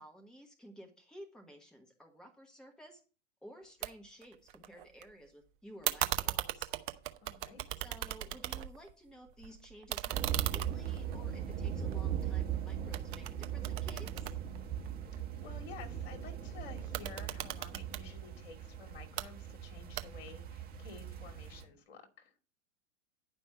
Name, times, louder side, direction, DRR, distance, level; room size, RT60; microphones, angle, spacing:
voice 1, 0.0-3.0 3.4-6.7 7.8-14.3, equal, ahead, 4 dB, 1.3 m, -54 dB
sound 1, 3.8-3.9 4.2-5.0 5.8-8.9 9.3-12.5 12.9-15.2 16.8-18.0 18.9-19.3 20.0-20.4, right 13 dB, 40° right, 0.9 m, -38 dB
voice 2, 7.2-7.6 15.4-22.3, left 5 dB, 50° left, 4 dB, 2.6 m, -52 dB
sound 2, 10.1-21.6, right 9 dB, 25° right, 1.9 m, -39 dB
10.5 x 5.4 x 6.0 m, 0.36 s
figure-of-eight pair, 95°, 38 cm